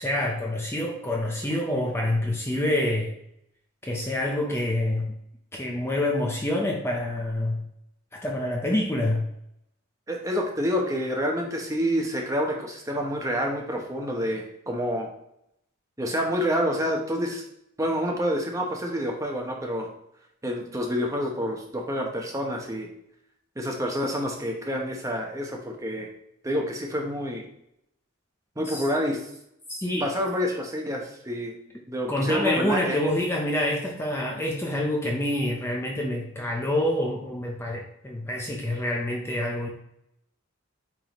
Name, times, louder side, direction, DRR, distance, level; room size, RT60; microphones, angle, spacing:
voice 1, 0.0-3.2 3.8-5.1 5.5-7.6 8.1-9.3 28.7-28.8 29.7-30.1 32.1-39.7, left 1 dB, 10° left, -1 dB, 0.7 m, -27 dB
voice 2, 10.1-15.1 16.0-17.4 17.8-19.9 20.4-22.9 23.6-26.1 26.4-27.4 28.6-29.2 30.0-31.5 31.9-33.0, equal, 15° right, 1 dB, 0.9 m, -28 dB
8.9 x 3.7 x 3.1 m, 0.77 s
head